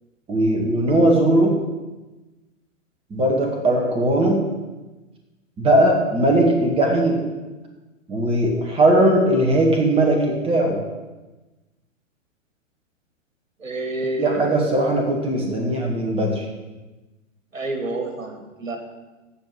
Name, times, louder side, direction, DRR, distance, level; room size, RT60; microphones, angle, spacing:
voice 1, 0.3-1.6 3.1-4.4 5.6-7.2 8.1-10.8 14.2-16.5, right 1 dB, 15° right, 1 dB, 2.0 m, -19 dB
voice 2, 13.6-14.6 15.5-15.6 17.5-18.8, right 2 dB, 75° right, 5 dB, 2.3 m, -29 dB
15.5 x 5.3 x 7.9 m, 1.1 s
figure-of-eight pair, 115°, 39 cm